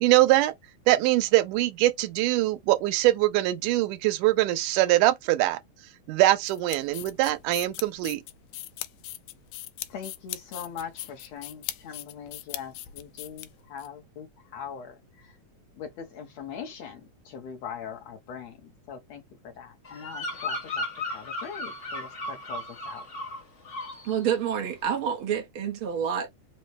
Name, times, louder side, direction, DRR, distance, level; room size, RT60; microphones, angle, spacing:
voice 1, 0.0-0.5 0.9-5.6 6.1-8.2, right 16 dB, 90° right, 2.1 m, -23 dB
sound 1, 6.5-13.9, left 15 dB, 90° left, 2.1 m, -39 dB
voice 2, 9.9-14.3 14.5-15.3 15.8-23.0, left 7 dB, 70° left, 1.9 m, -41 dB
Bird vocalization bird call bird song, 19.9-23.4 23.7-24.1, left 2 dB, 40° left, 1.1 m, -35 dB
voice 3, 24.0-26.3, right 8 dB, 70° right, 1.2 m, -28 dB
5.3 x 2.1 x 4.5 m
omnidirectional pair, 3.5 m